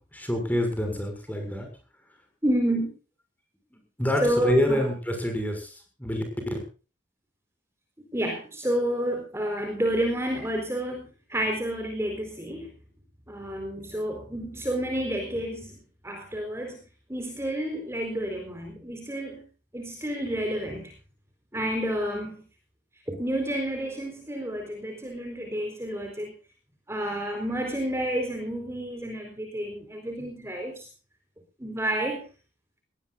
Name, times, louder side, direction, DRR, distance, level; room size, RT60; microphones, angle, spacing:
voice 1, 0.1-1.7 4.0-5.7 6.0-6.2 6.5-6.6, left 1 dB, 10° left, 5 dB, 6.2 m, -26 dB
voice 2, 2.4-2.9 4.2-4.9 8.1-12.7 13.3-15.7 16.0-16.8 17.1-19.4 19.7-20.9 21.5-22.4 23.1-26.4 26.9-30.9 31.6-32.2, right 1 dB, 15° right, 3 dB, 4.3 m, -30 dB
21.5 x 18.5 x 2.6 m, 0.36 s
head